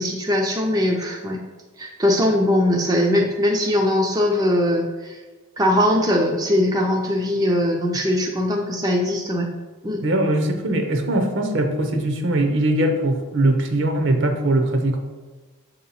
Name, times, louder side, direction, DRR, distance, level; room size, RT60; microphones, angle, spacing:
voice 1, 0.0-1.4 1.8-5.2 5.6-9.5 9.8-10.0, left 1 dB, 15° right, 0 dB, 0.5 m, -21 dB
voice 2, 10.0-15.0, right 1 dB, 60° right, 5 dB, 0.7 m, -21 dB
6.6 x 2.9 x 5.5 m, 1.3 s
head